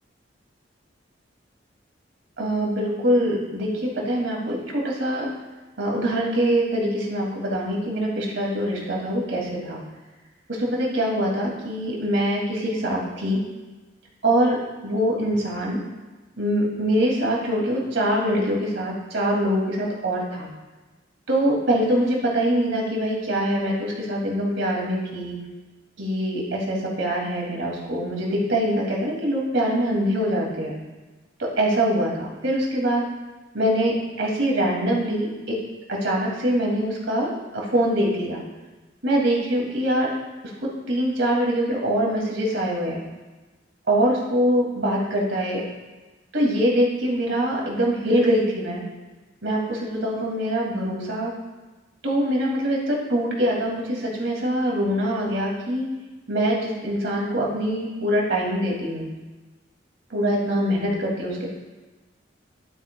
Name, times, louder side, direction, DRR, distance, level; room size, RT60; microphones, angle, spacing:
voice 1, 2.4-5.3 5.8-9.8 10.5-13.4 14.2-14.6 14.8-15.8 16.4-20.5 21.3-25.4 26.0-30.8 31.4-33.0 33.5-35.6 35.9-38.4 39.0-40.1 40.9-43.0 43.9-45.6 46.3-48.8 49.4-51.3 52.0-55.8 56.3-59.1 60.1-61.5, equal, 75° right, -3 dB, 2.4 m, -23 dB
11.0 x 9.0 x 2.3 m, 1.2 s
head